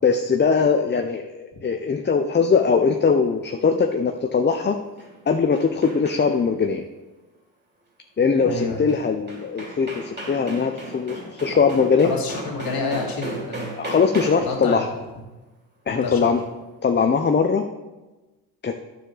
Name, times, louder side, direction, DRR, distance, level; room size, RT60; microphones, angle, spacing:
voice 1, 0.0-4.8 5.3-6.8 8.2-12.1 13.8-14.9 15.9-16.4 16.8-17.6 18.6-18.7, left 5 dB, 25° left, 5 dB, 0.7 m, -21 dB
sound 1, 4.8-6.5 8.9-9.0 9.3-14.6, right 1 dB, 20° right, 3.0 m, -36 dB
voice 2, 8.4-8.8 11.5-11.6 12.0-13.7 14.4-14.9 16.0-16.3, left 3 dB, 45° left, 1 dB, 2.7 m, -28 dB
9.9 x 7.0 x 3.9 m, 1.1 s
hypercardioid pair, 60°, 47 cm